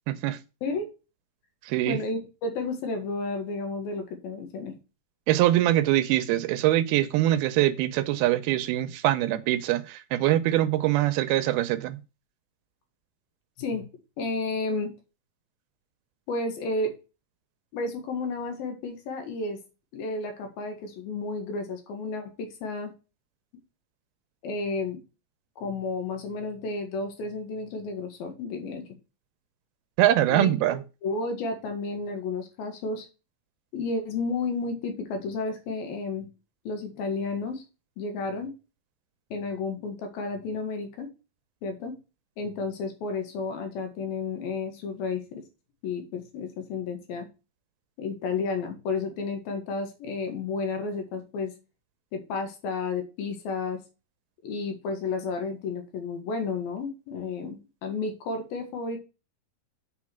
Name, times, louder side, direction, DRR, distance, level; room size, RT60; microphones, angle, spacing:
voice 1, 0.1-0.4 1.7-2.0 5.3-12.0 30.0-30.8, right 14 dB, 85° right, 2.6 m, -23 dB
voice 2, 1.9-4.7 13.6-13.9 14.2-14.9 16.3-16.9 17.7-19.6 19.9-22.9 24.4-25.0 25.6-28.9 30.3-30.5 31.0-33.1 33.7-36.3 36.6-37.6 38.0-38.5 39.3-41.1 41.6-42.0 42.4-45.4 45.8-47.3 48.0-51.5 52.1-53.8 54.4-59.0, left 3 dB, 75° left, 3.4 m, -32 dB
7.5 x 4.5 x 6.0 m
omnidirectional pair, 4.4 m